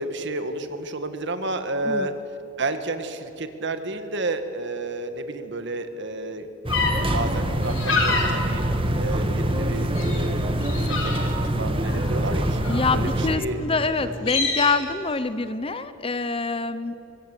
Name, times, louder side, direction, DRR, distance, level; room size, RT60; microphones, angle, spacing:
voice 1, 0.0-2.1 2.6-6.5 7.0-8.6 9.0-12.6 12.9-14.1, right 2 dB, 60° right, 8 dB, 1.9 m, -31 dB
sound 1, 6.6-13.4, right 1 dB, 25° right, 1.7 m, -25 dB
sound 2, 6.7-6.9 7.6-8.3 8.8-9.6 10.0-10.2 10.6-11.4 11.8-13.0 13.6-13.7 14.0-14.7, left 4 dB, 75° left, 5.1 m, -27 dB
voice 2, 12.7-16.9, left 4 dB, 25° left, 12 dB, 0.9 m, -25 dB
24.0 x 22.5 x 8.4 m, 3.0 s
head